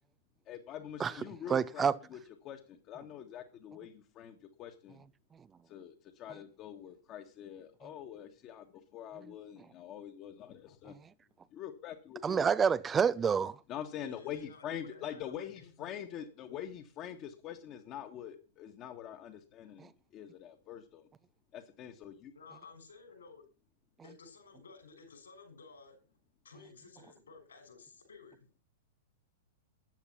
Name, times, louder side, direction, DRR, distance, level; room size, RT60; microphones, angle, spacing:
voice 1, 0.5-2.2 2.4-5.0 5.7-8.7 8.9-10.9 11.5-12.5 13.7-21.1 21.5-22.3, left 9 dB, 35° left, 1.7 m, -45 dB
voice 2, 1.5-2.0 12.2-13.5, right 6 dB, 20° right, 0.6 m, -27 dB
voice 3, 13.9-16.6 22.3-23.4 24.0-26.0 26.4-28.5, left 4 dB, 70° left, 5.9 m, -55 dB
14.0 x 9.8 x 5.8 m
figure-of-eight pair, 100°, 0 cm